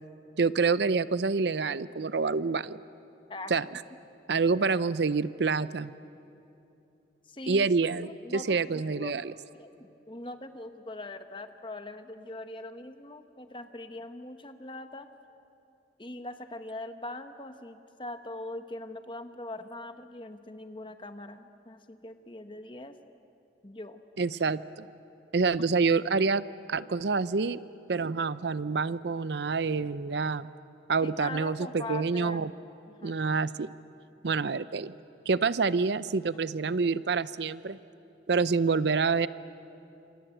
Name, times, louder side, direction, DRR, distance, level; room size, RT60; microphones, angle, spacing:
voice 1, 0.4-2.8 3.5-3.8 4.3-5.9 7.5-9.3 24.2-24.9 25.3-26.4 26.7-27.6 27.9-30.5 30.9-32.5 33.0-33.7 34.2-34.9 35.3-37.8 38.3-39.3, right 4 dB, 70° right, 16 dB, 0.6 m, -27 dB
voice 2, 7.3-7.7 8.0-9.2 9.5-15.1 16.0-23.0 23.6-24.0 31.0-32.5 32.9-33.2, left 2 dB, 25° left, 8 dB, 1.1 m, -42 dB
27.0 x 27.0 x 7.9 m, 2.7 s
head